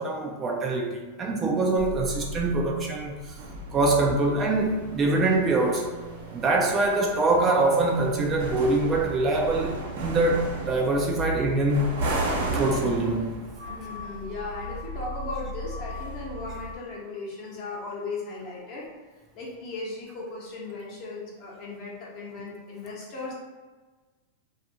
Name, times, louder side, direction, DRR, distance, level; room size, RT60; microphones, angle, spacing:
voice 1, 0.0-3.1 3.7-5.9 6.3-11.9 12.5-13.3, right 2 dB, 25° right, 0 dB, 0.4 m, -24 dB
sound 1, 1.8-16.8, right 1 dB, 75° right, 0.7 m, -35 dB
voice 2, 13.6-18.9 19.3-23.3, left 3 dB, 45° left, -4 dB, 0.8 m, -37 dB
2.4 x 2.3 x 2.7 m, 1.3 s
supercardioid pair, 135°, 0 cm